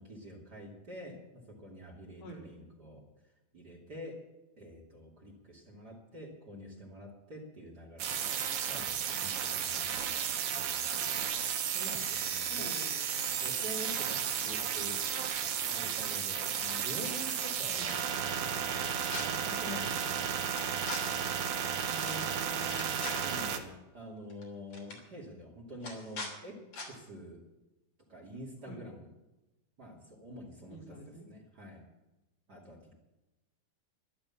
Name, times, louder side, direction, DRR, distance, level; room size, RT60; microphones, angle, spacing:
voice 1, 0.0-3.0 3.5-4.2 4.6-8.3 8.6-10.4 10.7-12.7 13.4-15.0 15.7-17.9 18.4-20.4 23.2-26.6 26.9-27.4 28.1-29.1 29.8-31.0 31.3-31.8 32.5-33.0, equal, 30° right, 0 dB, 2.8 m, -47 dB
sound 1, 8.0-23.6, right 8 dB, 80° right, 3.0 m, -33 dB
voice 2, 12.5-13.2 17.8-17.9 21.9-23.1 28.6-28.8 30.7-31.3, right 1 dB, 80° left, -3 dB, 6.1 m, -46 dB
sound 2, 17.0-17.5 17.9-18.0 18.8-19.2 20.6-21.0 22.1-22.2 22.5-23.3 24.3-24.4 24.7-25.0 25.8-26.3 26.7-26.9, left 2 dB, 45° left, 4.2 m, -41 dB
13.0 x 12.0 x 7.1 m, 1.0 s
omnidirectional pair, 4.1 m